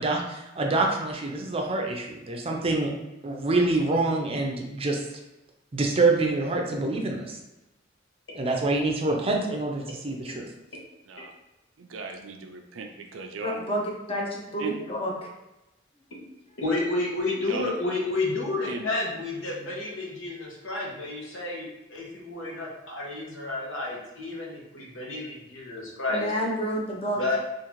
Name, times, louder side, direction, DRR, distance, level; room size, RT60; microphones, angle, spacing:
voice 1, 0.0-2.9 3.2-5.0 5.7-7.4 8.3-10.4, right 2 dB, 30° right, 1 dB, 0.5 m, -26 dB
voice 2, 11.8-13.6 14.6-14.8 17.5-17.7 18.7-18.8, right 4 dB, 85° right, 4 dB, 0.5 m, -37 dB
voice 3, 13.4-13.8 14.1-15.3 16.2-16.3 26.1-27.2, equal, 30° left, -2 dB, 0.7 m, -29 dB
voice 4, 16.6-26.3 27.2-27.4, left 2 dB, 85° left, -3 dB, 0.9 m, -30 dB
3.7 x 2.5 x 3.0 m, 0.95 s
head